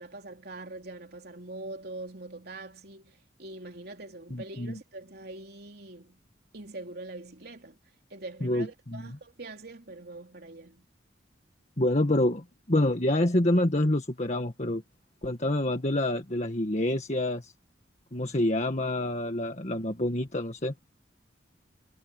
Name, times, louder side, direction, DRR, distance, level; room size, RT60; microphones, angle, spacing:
voice 1, 0.0-6.2 6.5-7.8 8.1-10.9, right 2 dB, 55° right, 3.4 m, -43 dB
voice 2, 4.3-4.8 8.4-9.2 11.8-14.8 15.2-17.5 18.1-20.7, left 1 dB, 40° left, 1.7 m, -27 dB
head